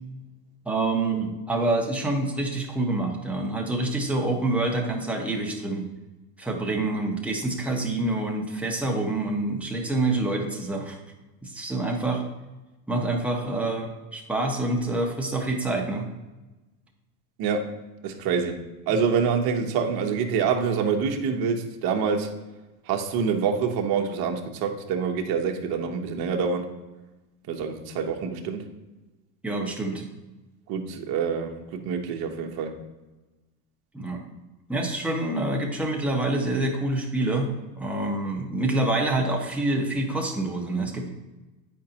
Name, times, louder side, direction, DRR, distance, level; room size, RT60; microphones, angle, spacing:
voice 1, 0.6-5.9 6.4-11.0 11.4-12.2 12.9-16.1 29.4-30.1 33.9-34.2 34.7-37.5 37.8-41.1, right 2 dB, 5° right, -1 dB, 1.1 m, -27 dB
voice 2, 17.4-17.7 18.0-22.3 22.9-26.7 27.5-28.7 30.7-32.8, right 6 dB, 50° right, 3 dB, 1.1 m, -26 dB
8.4 x 5.3 x 2.9 m, 1.1 s
supercardioid pair, 110°, 47 cm